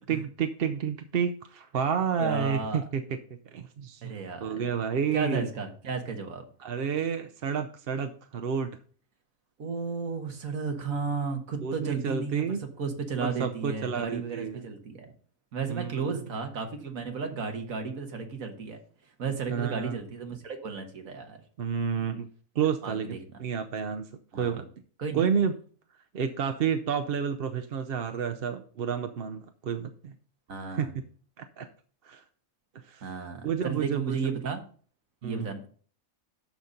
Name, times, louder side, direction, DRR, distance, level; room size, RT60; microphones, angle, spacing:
voice 1, 0.1-3.0 3.5-4.1 4.4-5.5 6.6-8.8 11.6-12.6 13.2-14.7 15.7-16.1 19.5-20.0 21.6-22.3 22.5-24.1 24.3-24.6 25.1-25.5 26.1-30.1 30.7-30.9 31.4-31.7 32.0-32.2 32.7-33.1 33.4-34.2 35.2-35.5, right 7 dB, 55° right, 8 dB, 0.8 m, -30 dB
voice 2, 2.2-2.8 4.0-4.7 5.1-6.4 9.6-15.1 15.5-18.8 19.2-21.4 22.8-23.2 24.3-24.6 25.0-25.3 30.5-30.9 33.0-34.6 35.2-35.7, right 5 dB, 90° right, 5 dB, 1.8 m, -33 dB
12.5 x 4.2 x 5.1 m, 0.44 s
omnidirectional pair, 1.4 m